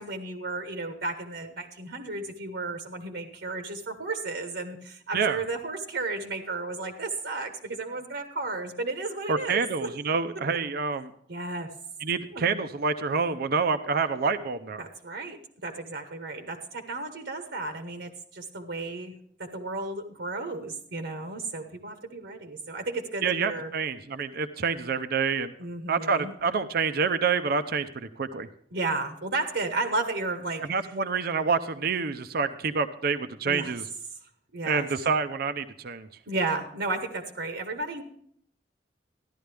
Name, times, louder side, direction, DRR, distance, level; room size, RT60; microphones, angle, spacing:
voice 1, 0.0-9.9 11.3-11.7 12.3-12.4 14.8-19.1 19.4-23.7 25.6-26.3 28.7-30.7 33.4-33.7 34.5-34.9 36.3-38.0, right 3 dB, 75° right, 7 dB, 1.2 m, -33 dB
voice 2, 9.3-11.1 12.0-14.8 23.2-25.5 25.9-28.5 30.7-33.8 34.6-36.1, right 5 dB, 60° right, 11 dB, 0.6 m, -27 dB
14.0 x 11.5 x 3.4 m, 0.65 s
head